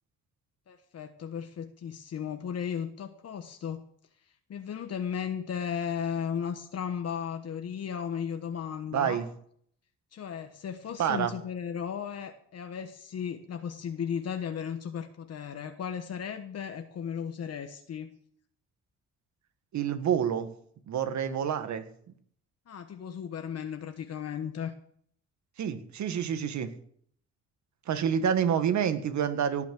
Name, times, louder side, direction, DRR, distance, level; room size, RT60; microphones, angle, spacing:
voice 1, 0.7-3.8 4.5-9.2 10.1-18.1 22.7-24.7, left 7 dB, 55° left, 7 dB, 1.3 m, -35 dB
voice 2, 8.9-9.3 11.0-11.3 19.7-20.5 20.9-21.9 25.6-26.7 27.9-29.6, right 8 dB, 70° right, 9 dB, 1.7 m, -28 dB
18.0 x 6.3 x 7.7 m, 0.62 s
cardioid pair, 90°, 30 cm